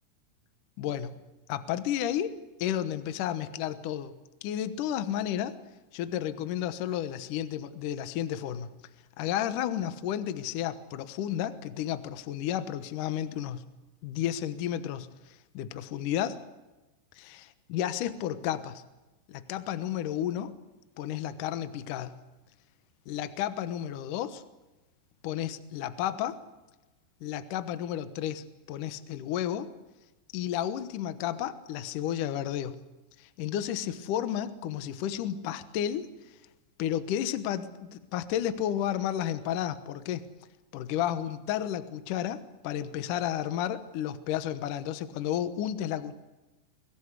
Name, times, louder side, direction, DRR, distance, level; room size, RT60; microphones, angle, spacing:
voice 1, 0.8-1.1 1.5-4.2 4.4-5.5 5.9-8.7 9.2-13.6 14.0-16.4 17.2-18.8 19.3-20.6 21.0-22.2 23.1-24.4 25.2-26.4 27.2-29.7 30.3-32.8 33.2-36.1 36.8-40.3 40.7-46.2, left 11 dB, 90° left, 11 dB, 1.8 m, -32 dB
24.0 x 17.5 x 8.3 m, 1.1 s
omnidirectional pair, 5.5 m